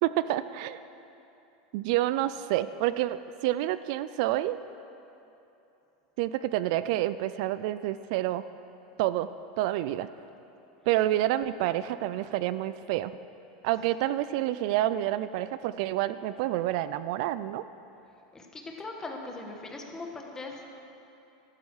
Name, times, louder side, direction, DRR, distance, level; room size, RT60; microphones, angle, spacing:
voice 1, 0.0-0.8 1.7-4.6 6.2-8.4 9.0-9.3 9.6-10.1 10.9-13.1 13.6-17.6, right 14 dB, 65° right, 14 dB, 0.4 m, -28 dB
voice 2, 18.3-20.7, left 3 dB, 15° left, 1 dB, 1.6 m, -40 dB
14.0 x 12.5 x 4.9 m, 2.9 s
supercardioid pair, 135°, 4 cm